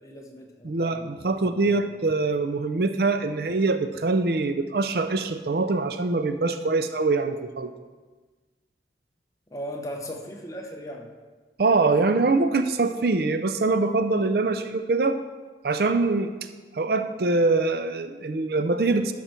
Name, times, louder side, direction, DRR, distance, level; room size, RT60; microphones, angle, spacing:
voice 1, 0.0-1.8 9.5-11.1, equal, 20° left, 2 dB, 1.0 m, -38 dB
voice 2, 0.6-7.7 11.6-15.2 15.6-16.3 16.7-19.1, right 3 dB, 60° right, 9 dB, 0.5 m, -24 dB
12.0 x 5.9 x 4.4 m, 1.3 s
head